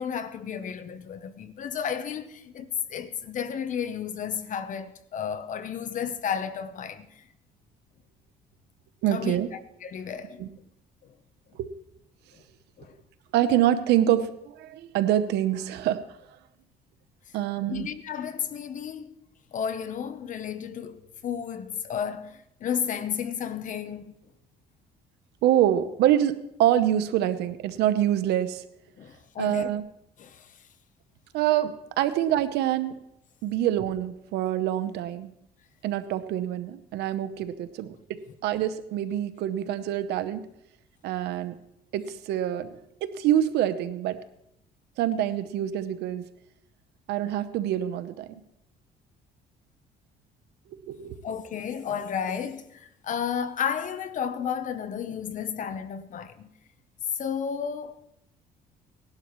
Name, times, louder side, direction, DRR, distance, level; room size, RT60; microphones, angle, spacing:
voice 1, 0.0-7.2 9.1-10.5 11.0-11.1 12.8-12.9 17.7-19.2 19.5-24.1 29.0-29.7 30.2-30.6 51.2-56.5 57.1-58.0, left 7 dB, 50° left, 0.9 m, -33 dB
voice 2, 9.0-9.5 10.4-10.5 11.6-11.7 13.3-16.0 17.3-17.9 25.4-28.6 29.4-29.8 31.3-33.0 33.4-35.3 35.8-40.5 41.0-41.6 41.9-42.7 43.0-44.2 45.0-46.2 47.1-48.3 50.9-51.1, right 11 dB, 80° right, 0.8 m, -26 dB
18.5 x 11.5 x 3.1 m
cardioid pair, 110°, 17 cm